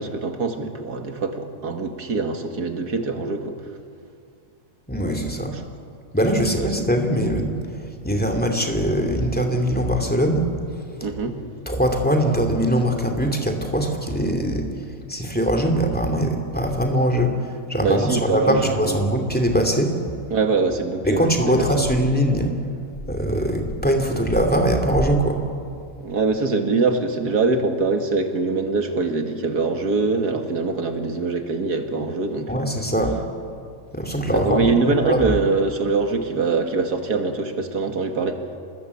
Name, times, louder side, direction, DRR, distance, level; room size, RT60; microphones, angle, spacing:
voice 1, 0.0-3.6 5.4-5.6 6.6-6.9 11.0-11.4 17.8-19.0 20.3-21.9 26.0-32.7 34.3-38.4, right 3 dB, 80° right, 5 dB, 2.4 m, -23 dB
voice 2, 4.9-5.5 6.1-10.5 11.7-14.7 15.1-19.9 21.0-22.5 23.1-25.4 32.5-33.2 33.9-34.7 35.0-35.4, equal, 5° left, 3 dB, 2.6 m, -21 dB
27.5 x 19.5 x 8.4 m, 2.4 s
omnidirectional pair, 1.7 m